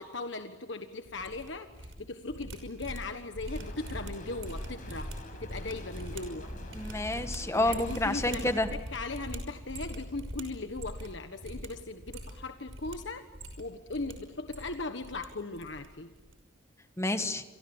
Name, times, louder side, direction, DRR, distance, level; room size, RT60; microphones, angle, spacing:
voice 1, 0.0-5.1 5.4-6.5 7.6-13.2 13.6-16.1, left 3 dB, 65° left, 7 dB, 1.4 m, -38 dB
sound 1, 1.1-1.9 2.2-11.1 11.4-11.7 12.0-13.0 13.3-14.1 14.4-15.3 15.5-16.3, right 1 dB, 85° right, 5.8 m, -42 dB
sound 2, 3.5-8.7, left 1 dB, 45° left, 5.8 m, -47 dB
voice 2, 6.7-8.7 17.0-17.4, left 2 dB, 15° left, 9 dB, 1.5 m, -29 dB
28.5 x 25.0 x 7.3 m, 1.2 s
head